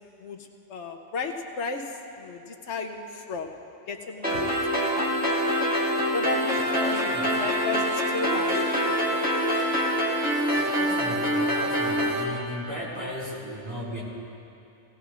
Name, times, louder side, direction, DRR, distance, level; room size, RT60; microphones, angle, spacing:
voice 1, 0.0-3.5 3.9-5.1 6.1-9.2, left 4 dB, 80° left, 4 dB, 1.1 m, -34 dB
sound 1, 4.2-12.2, equal, 5° right, 1.9 m, -25 dB
voice 2, 6.5-7.3 10.5-14.0, left 1 dB, 25° right, -7 dB, 4.0 m, -36 dB
18.0 x 17.5 x 2.5 m, 2.8 s
omnidirectional pair, 1.2 m